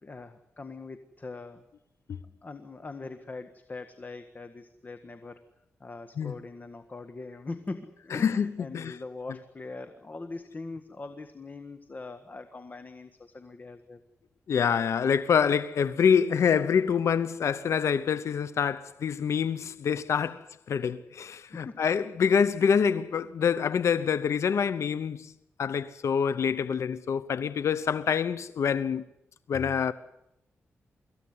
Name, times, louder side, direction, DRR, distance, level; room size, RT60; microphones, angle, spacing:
voice 1, 0.0-1.6 2.2-5.4 5.8-14.0 20.2-20.3 21.5-21.8, left 3 dB, 35° left, 1.6 m, -42 dB
voice 2, 8.1-9.0 14.5-25.3 25.6-29.0 29.5-29.9, left 7 dB, 75° left, 0.9 m, -26 dB
25.0 x 15.0 x 9.6 m
cardioid pair, 75°, 5 cm